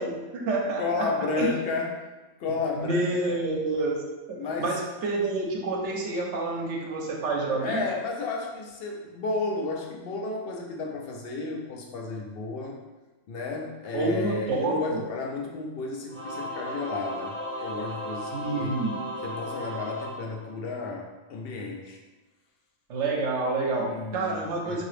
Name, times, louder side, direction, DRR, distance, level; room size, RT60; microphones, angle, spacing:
voice 1, 0.0-1.1 1.4-1.5 2.8-4.0 4.3-7.8 13.9-15.0 18.3-19.0 22.9-24.8, right 3 dB, 75° right, -1 dB, 0.9 m, -28 dB
voice 2, 0.8-2.0 2.4-3.4 4.4-4.7 7.6-12.8 13.3-18.7 19.2-22.0 23.9-24.8, left 3 dB, 65° left, 0 dB, 0.7 m, -32 dB
Singing / Musical instrument, 16.1-20.9, equal, 10° left, 0.6 m, -36 dB
2.8 x 2.6 x 3.2 m, 1.2 s
omnidirectional pair, 1.2 m